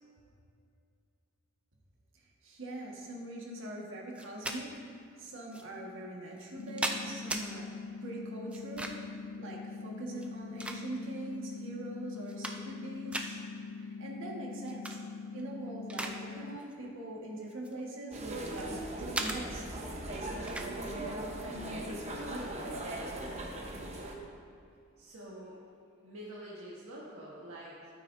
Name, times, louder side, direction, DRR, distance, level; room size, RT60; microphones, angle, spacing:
voice 1, 2.1-4.7 5.2-7.7 8.0-9.0 9.4-13.4 13.8-15.0 15.3-22.8, right 1 dB, 65° right, -2 dB, 1.5 m, -43 dB
sound 1, 4.1-4.6 5.5-5.6 6.4-7.4 8.5-9.1 10.1-11.2 11.7-11.8 12.2-12.8 13.1-13.3 14.6-15.0 15.4-16.2 16.5-16.7 17.5-18.6 19.1-19.4 20.5-20.7, right 1 dB, 5° right, 0.4 m, -37 dB
sound 2, 6.6-16.6, left 4 dB, 65° left, 0.3 m, -43 dB
sound 3, 18.1-24.1, right 1 dB, 30° right, 0.9 m, -39 dB
voice 2, 25.0-25.6 26.0-27.9, right 1 dB, 85° right, -7 dB, 1.3 m, -46 dB
12.5 x 8.7 x 2.6 m, 2.4 s
head